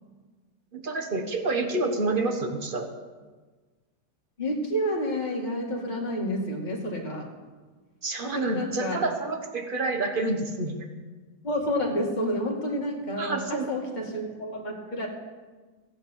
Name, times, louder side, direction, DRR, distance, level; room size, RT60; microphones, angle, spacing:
voice 1, 0.7-2.9 8.0-10.9 13.2-13.7, right 2 dB, 30° right, 5 dB, 1.1 m, -28 dB
voice 2, 4.4-7.3 8.2-9.1 11.4-15.1, equal, 25° left, 0 dB, 2.0 m, -29 dB
15.5 x 8.3 x 7.2 m, 1.3 s
omnidirectional pair, 2.1 m